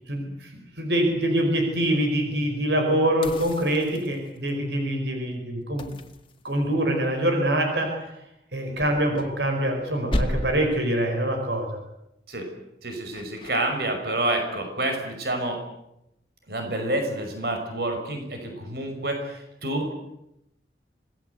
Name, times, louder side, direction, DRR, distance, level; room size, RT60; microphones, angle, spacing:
voice 1, 0.1-0.5 0.8-5.9 6.4-8.0 8.5-11.8, right 1 dB, 80° right, 3 dB, 5.1 m, -24 dB
sound 1, 3.2-4.5 5.8-7.0 8.7-9.8 10.1-10.8 13.1-13.5, left 1 dB, 30° left, 1.9 m, -32 dB
voice 2, 12.8-15.6 16.5-19.9, right 1 dB, 65° right, 4 dB, 5.8 m, -28 dB
26.0 x 19.0 x 8.1 m, 0.84 s
head